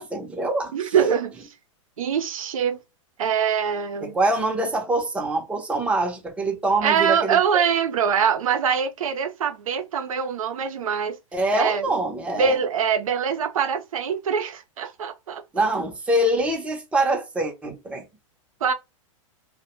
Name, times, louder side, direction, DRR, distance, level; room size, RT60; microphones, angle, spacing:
voice 1, 0.0-0.9 4.0-7.6 11.3-12.6 15.5-18.0, right 1 dB, 5° right, 0.6 m, -24 dB
voice 2, 0.7-1.3 2.0-2.8 3.2-4.2 6.8-11.2 11.5-11.9 12.4-15.7 18.6-18.7, right 7 dB, 90° right, 0.5 m, -23 dB
2.1 x 2.1 x 3.0 m
hypercardioid pair, 125°, 17 cm